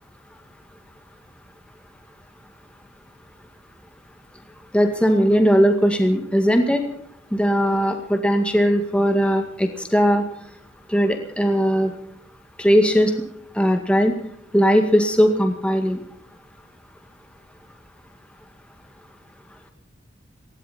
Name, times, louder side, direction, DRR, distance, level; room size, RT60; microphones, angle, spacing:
voice 1, 4.7-6.8 7.3-10.2 10.9-11.9 12.6-13.1 13.6-14.1 14.5-16.0, equal, 5° left, 4 dB, 2.0 m, -18 dB
20.0 x 16.5 x 4.3 m, 0.68 s
head